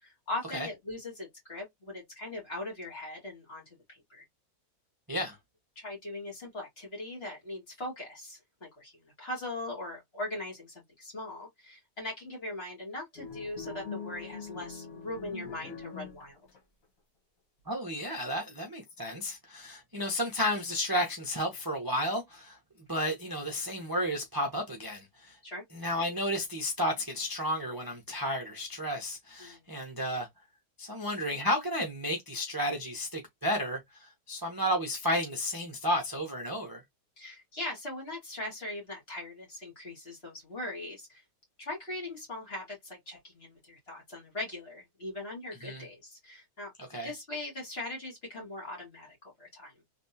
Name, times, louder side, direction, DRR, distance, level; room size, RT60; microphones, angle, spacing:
voice 1, 0.0-4.2 5.8-16.4 25.4-25.6 29.4-29.7 37.2-41.2 41.6-46.7 47.0-49.8, left 2 dB, 40° left, 2.2 m, -40 dB
sound 1, 13.2-16.6, left 5 dB, 60° left, 1.6 m, -43 dB
voice 2, 17.7-22.6 22.9-25.4 25.7-30.3 30.8-36.8 45.6-45.8 46.9-47.1, equal, 20° right, 0.7 m, -32 dB
3.4 x 2.9 x 2.7 m
omnidirectional pair, 1.7 m